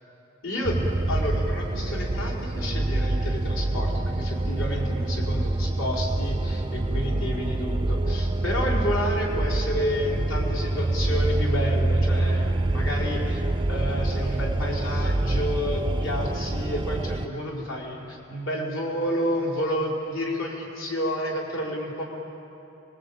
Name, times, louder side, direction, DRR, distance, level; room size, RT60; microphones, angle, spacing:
voice 1, 0.4-13.4 13.7-22.0, equal, 70° left, -2 dB, 5.0 m, -30 dB
sound 1, 0.6-17.3, right 2 dB, 25° right, 0.6 m, -26 dB
29.0 x 23.0 x 8.8 m, 3.0 s
head